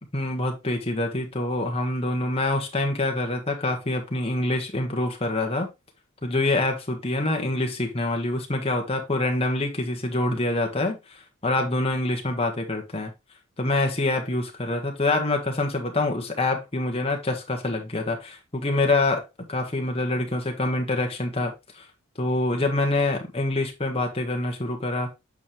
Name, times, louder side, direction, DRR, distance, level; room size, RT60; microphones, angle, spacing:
voice 1, 0.1-5.7 6.2-13.1 13.6-21.9 22.2-25.1, left 2 dB, 25° left, 1.6 m, -26 dB
8.5 x 5.4 x 3.2 m
head